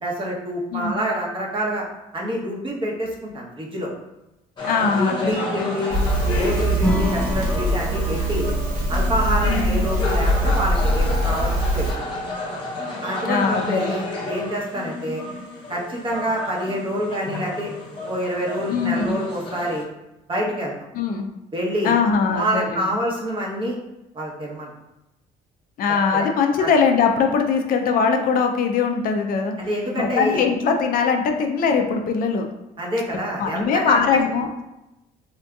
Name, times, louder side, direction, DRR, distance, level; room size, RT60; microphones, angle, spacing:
voice 1, 0.0-1.9 2.1-3.9 4.9-6.0 6.4-8.5 8.9-12.1 13.0-15.2 15.7-17.7 18.0-19.9 20.3-20.7 21.5-22.0 22.3-23.8 24.1-24.7 26.1-26.3 26.6-26.7 29.6-30.4 32.8-34.2, equal, 30° right, -2 dB, 0.8 m, -27 dB
voice 2, 4.6-5.7 9.4-9.9 13.2-14.1 18.7-19.2 20.9-21.3 21.8-23.0 25.8-29.6 30.0-32.5 33.4-34.6, left 5 dB, 55° left, 4 dB, 0.4 m, -21 dB
sound 1, 4.6-19.8, left 1 dB, 30° left, 0.8 m, -32 dB
Crackle, 5.9-11.9, equal, 50° right, 1.1 m, -22 dB
Acoustic guitar / Strum, 6.8-10.1, equal, 5° left, 0.5 m, -29 dB
3.6 x 2.6 x 2.3 m, 0.94 s
cardioid pair, 110°, 17 cm